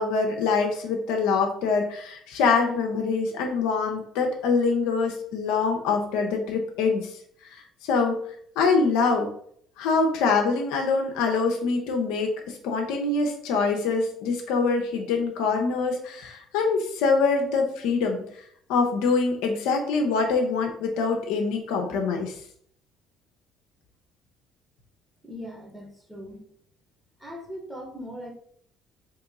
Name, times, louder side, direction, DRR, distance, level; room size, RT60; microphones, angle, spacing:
voice 1, 0.0-7.1 7.5-7.6 7.9-8.2 8.6-9.3 9.8-18.2 18.7-22.3, left 4 dB, 75° left, 3 dB, 0.6 m, -24 dB
voice 2, 25.2-26.4 27.2-28.3, equal, 5° right, 0 dB, 1.2 m, -39 dB
3.0 x 2.9 x 3.6 m, 0.63 s
hypercardioid pair, 65°, 0 cm